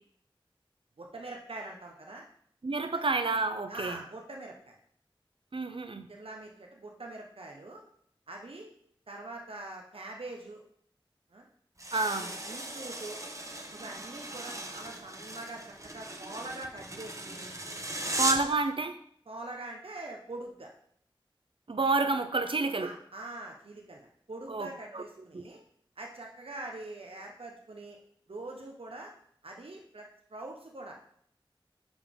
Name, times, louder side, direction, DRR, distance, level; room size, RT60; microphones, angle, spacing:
voice 1, 1.0-2.2 2.9-3.0 3.7-4.8 6.1-7.8 8.3-8.7 9.1-10.6 11.3-11.4 12.2-13.2 13.7-17.5 18.0-18.2 19.3-20.7 22.7-25.6 26.0-28.0 28.3-29.1 29.4-30.9, right 2 dB, 90° right, 1 dB, 0.9 m, -44 dB
voice 2, 2.6-4.0 5.5-6.1 11.9-12.3 18.2-19.0 21.7-22.9 24.5-25.0 25.3-25.4, right 3 dB, 65° right, 9 dB, 0.6 m, -29 dB
sound 1, 11.8-18.6, right 1 dB, 35° right, 0.8 m, -37 dB
7.1 x 5.1 x 3.6 m, 0.65 s
wide cardioid pair, 40°, 9 cm